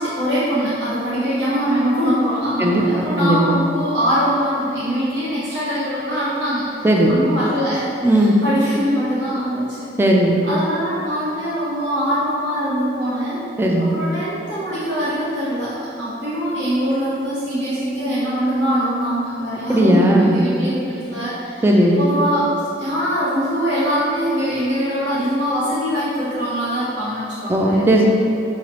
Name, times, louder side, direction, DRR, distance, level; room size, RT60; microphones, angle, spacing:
voice 1, 0.0-9.8 10.4-13.4 13.8-22.5 22.8-27.8, equal, 85° right, -11 dB, 1.0 m, -22 dB
voice 2, 3.2-3.6 6.8-7.1 8.0-8.3 10.0-10.4 13.6-13.9 19.7-20.4 21.6-22.0 27.5-28.1, right 1 dB, 15° right, -1 dB, 0.3 m, -16 dB
5.6 x 2.9 x 3.0 m, 2.7 s
head